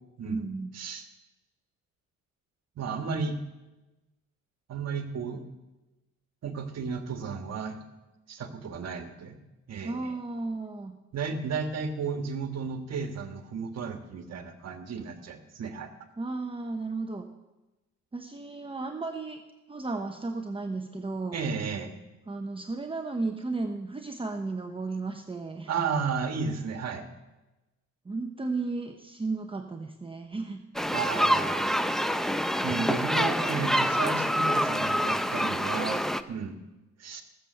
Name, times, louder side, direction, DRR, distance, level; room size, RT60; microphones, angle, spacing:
voice 1, 0.2-0.7 9.8-11.0 16.2-17.3 18.1-19.4 19.7-21.4 22.3-25.9 28.0-30.6, right 3 dB, 20° right, 4 dB, 0.9 m, -34 dB
voice 2, 0.7-1.0 2.8-3.4 4.7-5.4 6.4-7.8 8.3-9.4 9.7-10.1 11.1-15.9 21.3-21.9 25.7-27.0 30.9-31.7 32.6-36.0 36.3-36.6 37.0-37.2, right 5 dB, 60° right, 6 dB, 1.5 m, -33 dB
sound 1, 30.8-36.2, equal, ahead, 0.6 m, -26 dB
17.5 x 7.3 x 6.7 m, 1.1 s
cardioid pair, 90°, 30 cm